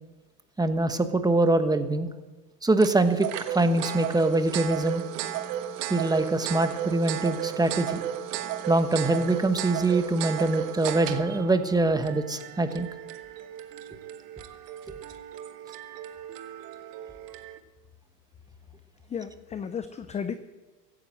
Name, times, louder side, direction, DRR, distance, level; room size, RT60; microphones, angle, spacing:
voice 1, 0.6-2.1 2.6-5.0 5.9-8.0 8.7-12.9, right 2 dB, 10° right, 9 dB, 1.1 m, -24 dB
sound 1, 2.8-17.6, right 11 dB, 75° right, 1.5 m, -35 dB
voice 2, 19.1-20.3, left 7 dB, 15° left, 11 dB, 0.5 m, -34 dB
15.5 x 10.0 x 7.6 m, 1.2 s
hypercardioid pair, 110°, 49 cm